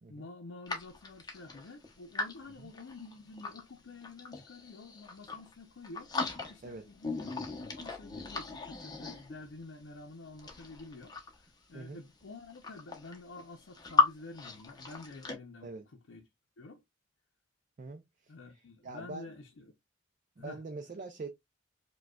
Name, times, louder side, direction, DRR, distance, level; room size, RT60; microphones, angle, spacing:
voice 1, 0.1-6.1 6.5-7.3 7.8-16.3 16.6-16.8 18.3-19.7 20.4-20.6, left 3 dB, 80° left, 0.6 m, -49 dB
sound 1, 0.7-3.6 4.0-5.5 5.8-6.8 7.0-9.6 10.3-11.5 12.2-12.3 12.5-14.1 14.3-15.3, left 4 dB, 20° left, 0.7 m, -36 dB
voice 2, 17.8-18.3 18.8-19.3 20.4-21.3, right 3 dB, 40° right, 0.4 m, -43 dB
4.8 x 2.2 x 2.2 m
head